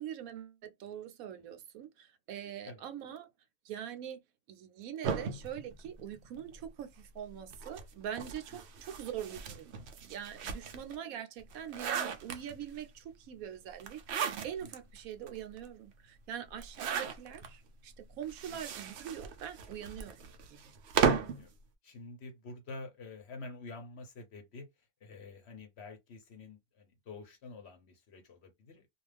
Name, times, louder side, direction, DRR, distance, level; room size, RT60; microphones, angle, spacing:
voice 1, 0.0-3.3 3.6-4.2 4.5-14.0 14.4-20.7, right 9 dB, 80° right, 1.0 m, -43 dB
sound 1, 5.0-6.6 7.5-10.9 11.4-12.8 13.8-14.8 15.3-15.4 15.6-15.7 16.6-17.5 18.2-21.4, right 6 dB, 65° right, 0.7 m, -35 dB
voice 2, 21.1-21.5 21.8-24.7 25.0-28.9, left 3 dB, 55° left, 0.9 m, -48 dB
2.4 x 2.3 x 3.2 m
omnidirectional pair, 1.5 m